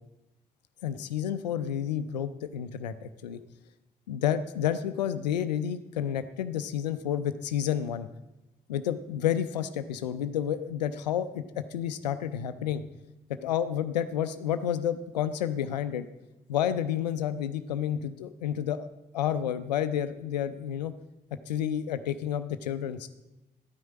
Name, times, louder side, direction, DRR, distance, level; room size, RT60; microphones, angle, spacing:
voice 1, 0.8-3.4 4.1-8.1 8.7-12.8 13.4-16.1 16.5-18.9 19.1-20.9 21.5-23.1, left 9 dB, 85° left, 12 dB, 0.5 m, -30 dB
12.0 x 9.4 x 4.9 m, 0.97 s
figure-of-eight pair, 40°, 21 cm